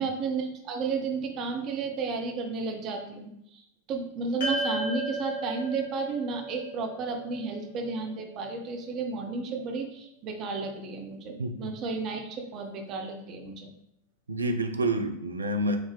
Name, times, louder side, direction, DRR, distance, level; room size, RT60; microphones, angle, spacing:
voice 1, 0.0-3.6 3.9-13.7, right 4 dB, 35° right, 3 dB, 0.6 m, -33 dB
sound 1, 4.4-8.9, right 1 dB, 55° left, 1.1 m, -35 dB
voice 2, 11.4-11.7 14.3-15.8, right 1 dB, 75° right, 5 dB, 0.4 m, -28 dB
4.9 x 2.1 x 3.2 m, 0.75 s
figure-of-eight pair, 90°, 0 cm